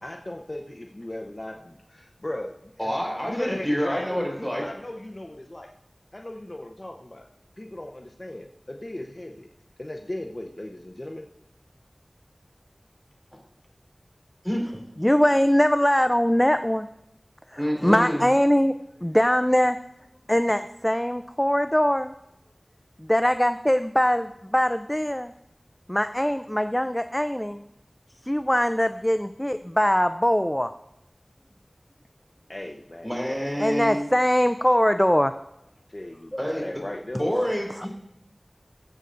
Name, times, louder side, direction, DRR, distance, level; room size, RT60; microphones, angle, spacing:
voice 1, 0.0-5.7 6.1-7.2 7.6-9.5 9.8-11.3 32.5-33.5 35.9-37.3, left 1 dB, 40° left, 2 dB, 0.7 m, -37 dB
voice 2, 2.8-4.6 14.4-14.8 17.6-18.2 33.0-34.1 36.3-36.6 37.1-37.9, equal, 5° right, -1 dB, 4.1 m, -27 dB
voice 3, 15.0-16.9 17.5-18.7 19.0-19.8 20.3-22.1 23.0-25.3 25.9-27.6 28.2-30.7 33.6-35.3, equal, 15° left, 10 dB, 0.4 m, -22 dB
22.0 x 8.0 x 2.5 m, 0.85 s
wide cardioid pair, 45°, 0 cm